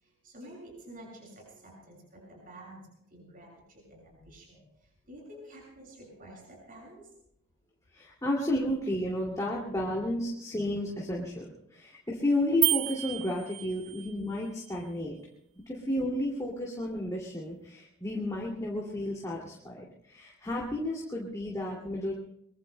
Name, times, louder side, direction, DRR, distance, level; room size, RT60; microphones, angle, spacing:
voice 1, 0.0-2.8 3.1-7.1, right 1 dB, 40° right, -2 dB, 7.0 m, -50 dB
voice 2, 7.9-15.2 15.7-22.1, left 1 dB, 15° left, -3 dB, 2.4 m, -32 dB
sound 1, 12.6-14.2, right 12 dB, 75° right, 1.0 m, -30 dB
23.5 x 23.0 x 2.2 m, 0.77 s
head